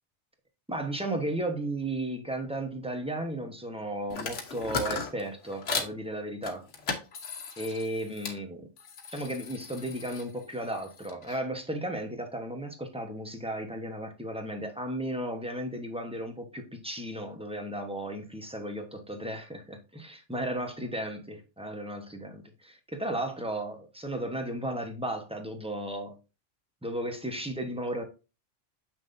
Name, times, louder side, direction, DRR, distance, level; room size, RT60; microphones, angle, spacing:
voice 1, 0.7-6.7 7.6-8.7 9.1-26.2 26.8-28.0, right 1 dB, 5° right, 1.0 m, -34 dB
sound 1, 4.1-5.9 6.4-8.4 8.8-11.4, left 4 dB, 80° left, 1.3 m, -37 dB
7.0 x 5.9 x 2.6 m
omnidirectional pair, 1.2 m